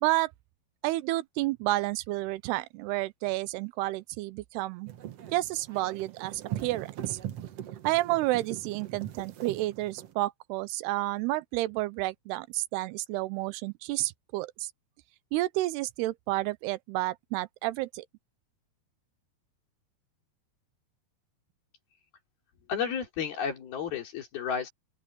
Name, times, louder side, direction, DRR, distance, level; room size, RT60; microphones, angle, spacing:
voice 1, 0.0-0.3 0.8-4.9 5.3-7.2 7.8-14.7 15.3-18.1, right 18 dB, 85° right, 2.7 m, -30 dB
sound 1, 4.9-10.1, right 11 dB, 70° right, 1.4 m, -40 dB
voice 2, 22.7-24.7, left 7 dB, 65° left, 5.3 m, -32 dB
open air
omnidirectional pair, 4.7 m